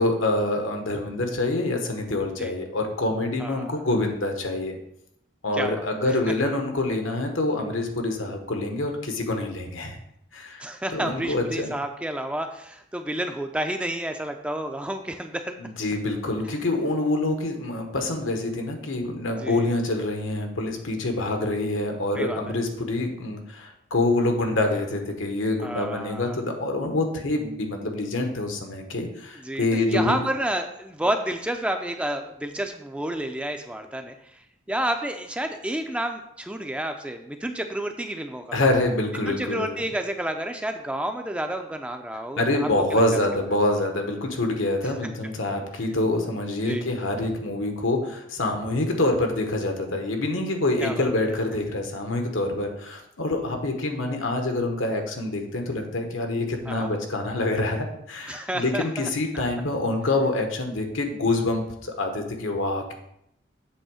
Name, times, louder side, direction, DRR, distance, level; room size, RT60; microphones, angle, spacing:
voice 1, 0.0-4.8 5.4-10.0 10.3-10.6 10.9-11.7 15.6-30.2 38.5-39.7 42.4-62.9, left 2 dB, 80° left, 4 dB, 1.2 m, -26 dB
voice 2, 3.4-3.9 5.5-5.9 10.6-15.5 19.4-19.7 22.2-22.5 25.6-26.4 29.4-34.1 34.7-38.6 39.3-43.2 46.7-46.9 50.8-51.1 56.7-56.9 58.3-59.1, right 1 dB, 5° right, 5 dB, 0.4 m, -30 dB
7.8 x 3.5 x 6.3 m, 0.77 s
head